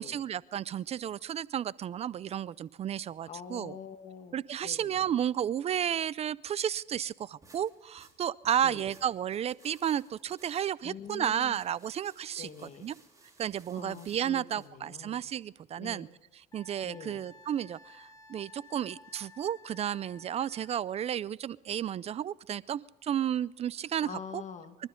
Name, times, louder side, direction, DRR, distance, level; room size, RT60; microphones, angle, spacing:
voice 1, 0.0-3.7 4.3-12.5 12.8-12.9 13.4-16.1 16.5-24.4 24.8-24.9, right 10 dB, 40° right, 0.4 m, -32 dB
voice 2, 3.3-5.1 8.6-8.9 10.8-11.6 12.3-12.9 13.7-15.2 15.8-16.1 16.8-17.2 24.0-24.8, left 7 dB, 45° left, 1.7 m, -45 dB
sound 1, 7.4-14.7, right 3 dB, 20° right, 3.7 m, -61 dB
Wind instrument woodwind instrument, 16.5-20.8, left 3 dB, 20° left, 2.4 m, -55 dB
26.0 x 12.5 x 3.8 m
cardioid pair, 105°, 17 cm